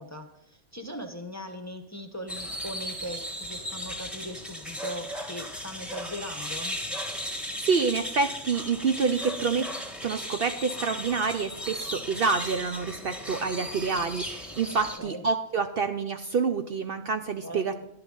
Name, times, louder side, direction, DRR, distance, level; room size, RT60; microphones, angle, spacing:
voice 1, 0.0-6.8 15.0-15.3 17.4-17.8, equal, 15° left, 4 dB, 0.9 m, -40 dB
sound 1, 2.3-15.0, equal, ahead, 1.2 m, -36 dB
voice 2, 7.6-9.7 10.0-17.8, right 5 dB, 55° right, 7 dB, 0.8 m, -27 dB
11.5 x 11.0 x 3.9 m, 0.77 s
omnidirectional pair, 1.3 m